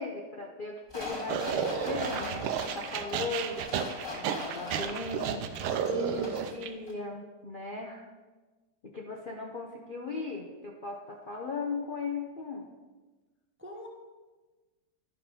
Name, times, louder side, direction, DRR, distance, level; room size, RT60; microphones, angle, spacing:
voice 1, 0.0-5.5 6.0-8.1 8.8-12.7, left 4 dB, 80° left, -1 dB, 0.4 m, -38 dB
sound 1, 0.9-6.6 6.9-7.0, left 2 dB, 10° left, 1.8 m, -41 dB
sound 2, 1.3-6.7, right 7 dB, 80° right, 1.5 m, -32 dB
voice 2, 5.9-6.4 13.6-13.9, right 2 dB, 15° right, 0 dB, 0.4 m, -39 dB
11.5 x 5.3 x 5.6 m, 1.3 s
omnidirectional pair, 2.3 m